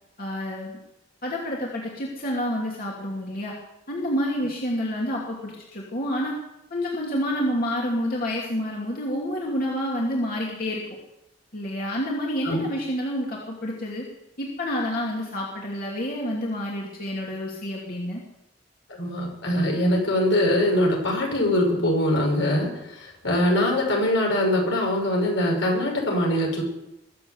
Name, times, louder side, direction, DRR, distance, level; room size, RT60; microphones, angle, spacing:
voice 1, 0.2-0.8 1.2-3.5 3.9-6.3 6.7-10.8 11.5-14.1 14.4-18.2, equal, 50° left, -3 dB, 2.7 m, -28 dB
voice 2, 18.9-26.6, left 1 dB, 85° left, 0 dB, 6.4 m, -23 dB
22.0 x 7.6 x 8.1 m, 0.88 s
head